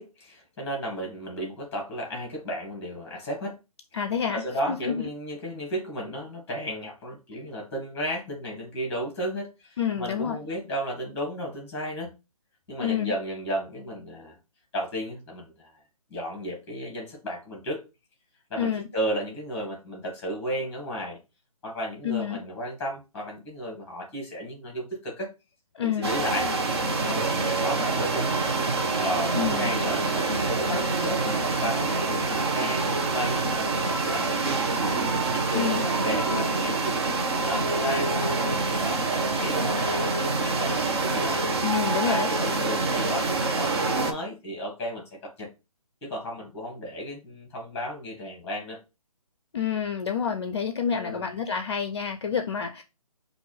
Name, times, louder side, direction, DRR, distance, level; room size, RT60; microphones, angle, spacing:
voice 1, 0.0-3.6 4.3-12.1 12.7-14.4 14.7-15.7 16.1-17.8 18.5-21.2 21.6-25.3 25.8-26.5 27.0-28.3 29.0-34.6 35.2-37.0 37.4-41.4 41.9-45.5 46.0-48.8 50.9-51.3, equal, 10° left, 1.7 m, -34 dB
voice 2, 3.9-5.1 9.8-10.4 12.8-13.1 18.6-18.8 22.0-22.4 25.8-26.1 29.3-29.7 35.5-35.8 41.6-42.3 49.5-52.8, left 7 dB, 45° left, 0.5 m, -28 dB
sound 1, 26.0-44.1, right 3 dB, 45° right, 0.9 m, -26 dB
5.9 x 2.6 x 3.3 m
figure-of-eight pair, 145°, 19 cm